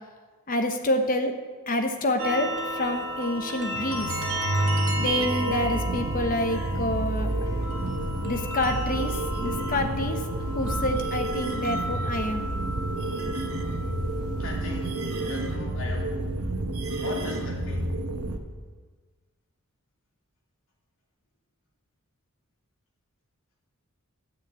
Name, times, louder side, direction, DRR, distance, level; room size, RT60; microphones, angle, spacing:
voice 1, 0.5-1.3 1.7-4.1 5.0-7.3 8.2-10.2 10.5-12.5, left 1 dB, 40° left, 5 dB, 1.0 m, -28 dB
sound 1, 2.2-15.5, right 1 dB, 60° right, 1.9 m, -34 dB
sound 2, 3.7-18.4, right 2 dB, 80° right, 1.2 m, -30 dB
voice 2, 14.4-16.3 16.9-18.0, left 2 dB, 60° left, -3 dB, 2.8 m, -39 dB
9.8 x 6.8 x 8.2 m, 1.4 s
head